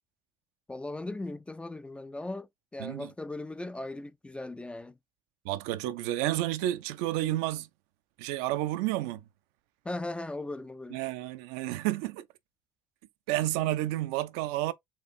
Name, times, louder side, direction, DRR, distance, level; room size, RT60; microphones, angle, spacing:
voice 1, 0.7-5.0 9.8-11.0, left 2 dB, 10° left, 0.3 m, -38 dB
voice 2, 5.4-7.7 8.2-9.2 10.9-12.2 13.3-14.7, right 15 dB, 65° right, 0.4 m, -30 dB
4.4 x 2.3 x 2.6 m
figure-of-eight pair, 55°, 11 cm